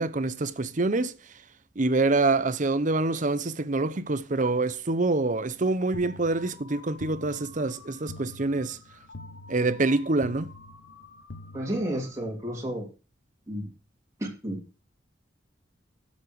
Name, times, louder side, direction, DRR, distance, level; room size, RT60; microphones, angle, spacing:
voice 1, 0.0-1.5 1.7-8.8 9.5-10.5, right 3 dB, 40° right, 0.8 m, -26 dB
sound 1, 5.9-12.3, left 2 dB, 70° left, 1.5 m, -45 dB
voice 2, 11.5-12.9 13.5-13.7 14.2-14.6, right 1 dB, 15° right, 3.2 m, -31 dB
12.5 x 7.5 x 4.7 m
head